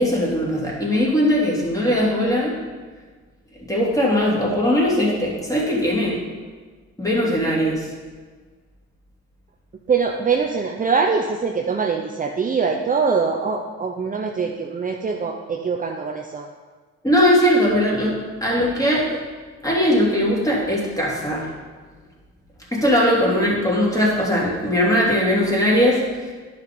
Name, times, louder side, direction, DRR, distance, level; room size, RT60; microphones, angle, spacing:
voice 1, 0.0-2.5 3.7-6.1 7.0-7.9 17.0-18.1 18.4-19.2 19.6-21.5 22.7-26.0, equal, 10° left, -4 dB, 3.2 m, -19 dB
voice 2, 9.9-16.5, right 5 dB, 25° right, 2 dB, 0.8 m, -23 dB
10.5 x 5.9 x 5.4 m, 1.4 s
cardioid pair, 90°, 30 cm